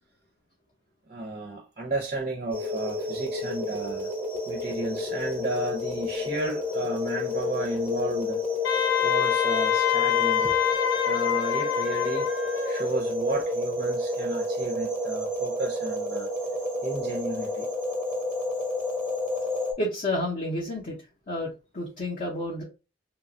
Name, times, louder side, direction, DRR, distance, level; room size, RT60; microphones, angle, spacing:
voice 1, 1.1-4.1 4.5-8.4 9.0-10.6 11.0-12.3 12.6-16.3 16.8-17.7, right 2 dB, 35° right, 0.4 m, -33 dB
sound 1, 2.5-19.7, left 2 dB, 10° left, 0.8 m, -30 dB
Wind instrument woodwind instrument, 8.6-12.9, left 10 dB, 80° left, 0.7 m, -26 dB
voice 2, 19.8-21.0 21.3-22.6, left 1 dB, 40° left, 0.6 m, -30 dB
2.9 x 2.2 x 2.5 m
head